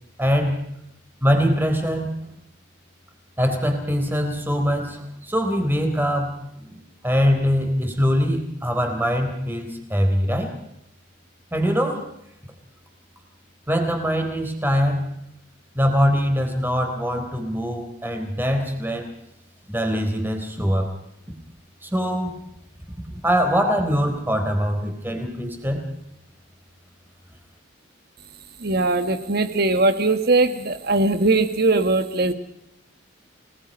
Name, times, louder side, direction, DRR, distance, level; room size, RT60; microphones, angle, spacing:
voice 1, 0.2-0.6 1.2-2.1 3.4-10.5 11.5-12.1 13.7-15.1 15.7-19.1 19.7-20.9 21.8-22.4 23.1-25.8, equal, 10° right, 5 dB, 3.8 m, -23 dB
voice 2, 28.6-32.3, right 2 dB, 50° right, 9 dB, 1.7 m, -20 dB
30.0 x 19.0 x 5.5 m, 0.79 s
head